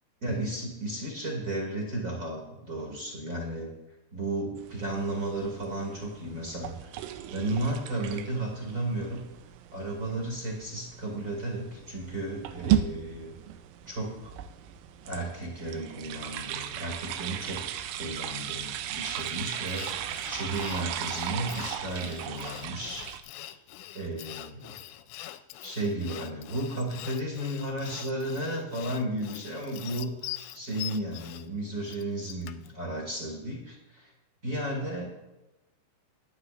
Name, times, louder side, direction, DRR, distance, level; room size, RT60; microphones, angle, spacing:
voice 1, 0.2-3.7 4.1-6.7 7.3-9.2 9.7-13.3 13.8-14.4 15.0-17.6 17.9-23.1 23.9-24.8 25.6-34.1 34.4-35.1, right 1 dB, 40° right, -1 dB, 1.2 m, -34 dB
sound 1, 4.6-23.2, right 11 dB, 90° right, 3.2 m, -36 dB
Sawing, 19.2-32.7, left 14 dB, 85° left, 2.7 m, -43 dB
21.0 x 9.7 x 2.5 m, 0.99 s
omnidirectional pair, 5.5 m